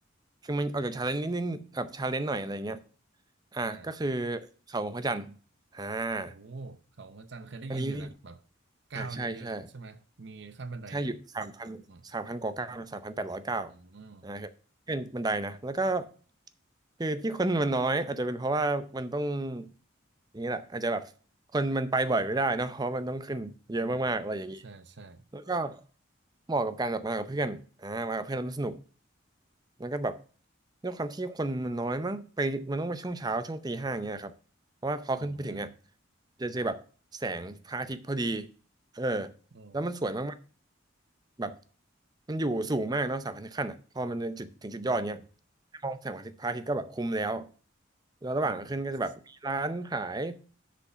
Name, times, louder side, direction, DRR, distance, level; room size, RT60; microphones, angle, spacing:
voice 1, 0.4-2.8 3.5-4.4 4.7-5.4 5.7-6.3 7.7-8.1 8.9-9.7 10.9-13.7 14.2-14.5 14.9-16.1 17.0-19.7 20.3-21.1 21.5-24.6 25.3-25.8 26.5-28.8 29.8-30.2 30.8-34.3 34.8-35.7 36.4-36.8 37.1-38.5 38.9-39.3 39.7-40.3 41.4-41.6 42.3-45.2 45.8-47.5 48.2-50.4, right 2 dB, 20° right, 0.5 m, -31 dB
voice 2, 3.6-4.0 6.3-8.4 8.9-11.1 11.9-12.1 13.7-14.3 23.8-24.1 24.6-25.2 35.2-35.7 39.5-39.8 44.8-45.2 48.4-48.7, right 3 dB, 60° right, 0.7 m, -44 dB
6.7 x 5.1 x 6.8 m
head